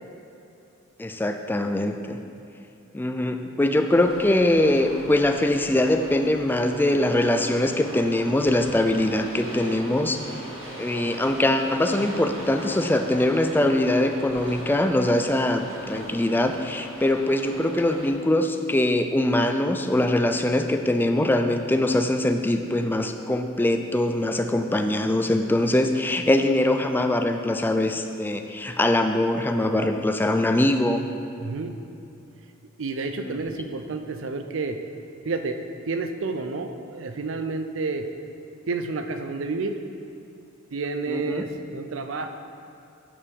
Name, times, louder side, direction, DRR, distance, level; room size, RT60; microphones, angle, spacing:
voice 1, 1.0-2.2 2.9-10.2 10.8-31.0 33.2-33.4 41.1-41.5, left 1 dB, 10° left, 6 dB, 0.3 m, -22 dB
sound 1, 3.9-18.1, right 1 dB, 85° right, 1.8 m, -40 dB
voice 2, 31.4-31.7 32.8-34.8 35.2-35.6 35.9-38.1 38.7-39.8 40.7-42.3, right 3 dB, 65° right, 7 dB, 0.5 m, -30 dB
8.6 x 5.1 x 4.8 m, 2.7 s
head